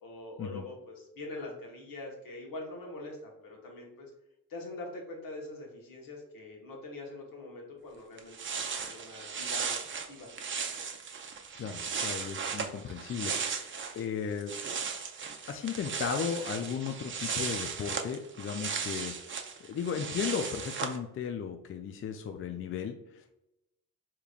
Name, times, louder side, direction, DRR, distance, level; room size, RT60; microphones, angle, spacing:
voice 1, 0.0-4.1 4.5-10.3, left 2 dB, 70° left, -1 dB, 1.2 m, -44 dB
sound 1, 7.9-8.0 8.2-14.0 14.3-21.0, right 6 dB, 35° right, 0.5 m, -36 dB
voice 2, 11.6-14.5 15.5-23.2, left 7 dB, 40° left, 6 dB, 0.4 m, -36 dB
3.6 x 3.0 x 2.4 m, 0.87 s
supercardioid pair, 65°, 36 cm